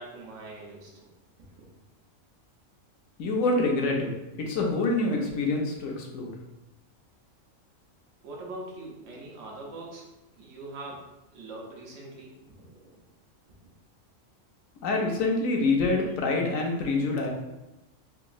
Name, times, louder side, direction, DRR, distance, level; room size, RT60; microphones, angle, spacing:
voice 1, 0.0-1.8 8.2-13.0 13.5-13.7, right 2 dB, 70° right, -2 dB, 1.1 m, -43 dB
voice 2, 3.2-4.1 4.4-6.3 14.8-17.3, left 3 dB, 80° left, 1 dB, 1.0 m, -26 dB
3.4 x 2.9 x 2.3 m, 0.98 s
omnidirectional pair, 1.4 m